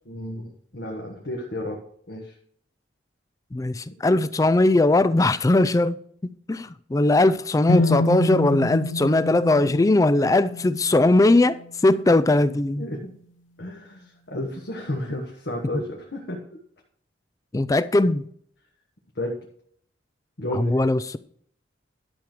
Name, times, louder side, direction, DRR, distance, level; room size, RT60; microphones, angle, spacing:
voice 1, 0.1-1.8 2.1-2.3 12.8-13.1 13.6-16.4 19.1-19.4 20.4-20.8, left 1 dB, 60° left, 1.4 m, -32 dB
voice 2, 3.5-12.9 17.5-18.3 20.5-21.2, left 2 dB, 20° left, 0.3 m, -20 dB
sound 1, 7.7-11.6, left 1 dB, 90° left, 0.8 m, -27 dB
11.5 x 6.1 x 5.0 m
head